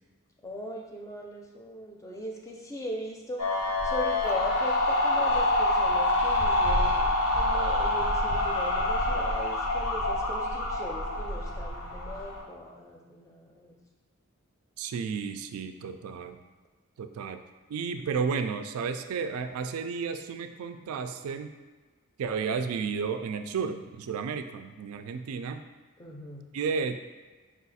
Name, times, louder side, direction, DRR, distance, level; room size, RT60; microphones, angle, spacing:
voice 1, 0.4-13.7 26.0-26.5, left 1 dB, 15° left, -1 dB, 0.5 m, -39 dB
sound 1, 3.4-12.4, left 1 dB, 80° left, 0.9 m, -26 dB
voice 2, 14.8-16.4 17.0-17.4 17.7-21.6 22.2-25.6 26.5-27.0, right 5 dB, 85° right, 8 dB, 0.3 m, -32 dB
4.8 x 2.4 x 4.0 m, 1.4 s
head